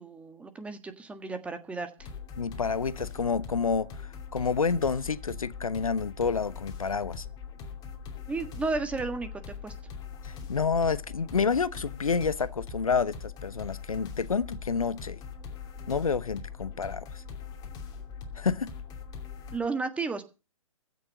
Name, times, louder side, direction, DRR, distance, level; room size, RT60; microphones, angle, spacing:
voice 1, 0.0-1.9 8.3-9.3 9.6-9.7 19.5-20.3, right 3 dB, 5° right, 1.6 m, -33 dB
sound 1, 2.0-19.6, left 6 dB, 20° left, 2.8 m, -41 dB
voice 2, 2.4-3.9 4.3-7.2 10.2-15.2 15.9-17.1 18.4-18.7, left 5 dB, 70° left, 1.0 m, -29 dB
15.5 x 6.6 x 8.1 m
figure-of-eight pair, 125°, 18 cm